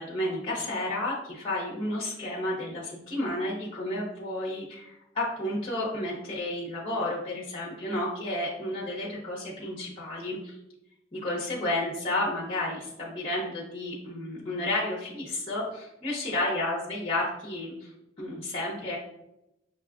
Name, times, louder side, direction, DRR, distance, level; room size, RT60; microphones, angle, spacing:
voice 1, 0.0-10.5 11.1-17.9 18.2-19.0, left 1 dB, 30° left, -4 dB, 0.8 m, -31 dB
5.9 x 2.3 x 2.3 m, 0.87 s
head